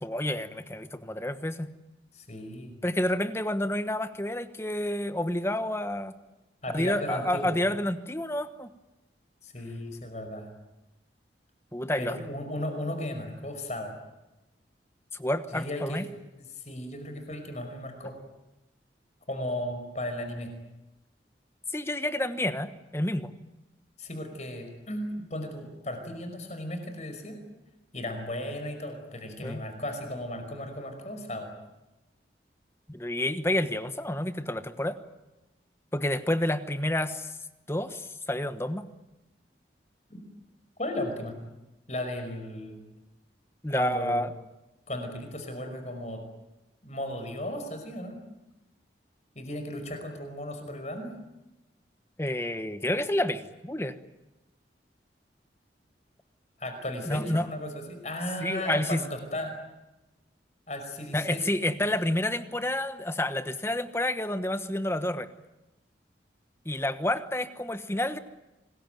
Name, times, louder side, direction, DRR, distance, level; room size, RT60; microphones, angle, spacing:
voice 1, 0.0-1.7 2.8-6.1 6.7-8.7 11.7-12.2 15.1-16.0 21.7-23.3 29.4-29.6 32.9-35.0 35.9-37.3 37.7-38.9 43.6-44.3 52.2-54.0 57.1-57.5 58.4-59.0 61.1-65.3 66.6-68.2, left 1 dB, 15° left, 11 dB, 1.2 m, -29 dB
voice 2, 2.1-2.8 6.6-7.6 9.4-10.5 12.0-13.9 15.5-16.0 16.4-18.1 19.3-20.5 24.0-27.4 27.9-31.5 40.1-40.2 40.8-41.3 41.9-42.8 43.7-44.2 44.9-46.2 46.8-48.2 49.4-51.1 56.6-59.5 60.7-61.4, left 1 dB, 40° left, 6 dB, 5.3 m, -35 dB
26.5 x 21.0 x 9.2 m, 1.0 s
head